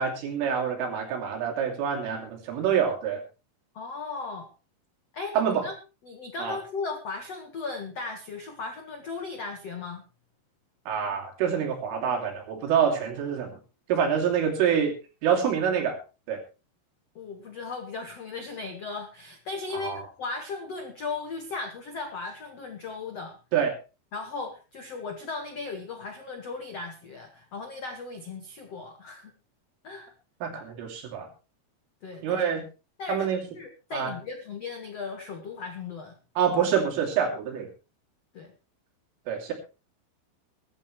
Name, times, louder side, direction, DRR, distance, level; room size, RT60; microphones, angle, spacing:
voice 1, 0.0-3.2 5.4-5.7 6.4-6.6 10.9-13.5 13.9-14.9 15.2-16.0 16.3-16.4 19.8-20.0 23.5-23.7 30.4-31.3 32.2-32.6 33.1-33.4 33.9-34.1 36.4-37.7 39.3-39.5, right 7 dB, 75° right, 2 dB, 5.5 m, -26 dB
voice 2, 3.7-4.5 5.1-5.7 6.0-10.0 17.1-23.4 24.1-29.3 29.8-30.1 32.0-32.4 33.0-33.3 33.5-36.1 38.3-38.5, left 4 dB, 85° left, 4 dB, 1.4 m, -37 dB
22.0 x 11.0 x 3.3 m, 0.31 s
omnidirectional pair, 5.8 m